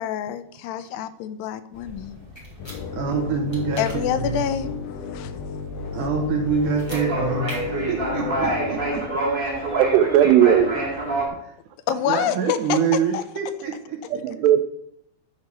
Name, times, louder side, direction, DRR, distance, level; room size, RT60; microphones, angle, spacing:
voice 1, 0.0-2.2 3.8-5.3 11.9-13.2, left 9 dB, 90° left, 12 dB, 2.7 m, -27 dB
sound 1, 1.7-11.3, right 2 dB, 30° right, 0.9 m, -28 dB
sound 2, 2.4-2.8 3.5-4.0 6.7-7.0 7.4-7.6, equal, 10° left, 1.6 m, -39 dB
sound 3, 2.6-8.9, left 5 dB, 70° left, 2.9 m, -33 dB
voice 2, 2.9-4.4 5.9-9.0 11.4-11.5 12.1-14.5, right 5 dB, 70° right, 2 dB, 2.0 m, -26 dB
voice 3, 9.7-10.7 14.1-14.6, right 10 dB, 90° right, 8 dB, 2.8 m, -17 dB
11.0 x 4.6 x 5.9 m, 0.70 s
omnidirectional pair, 4.8 m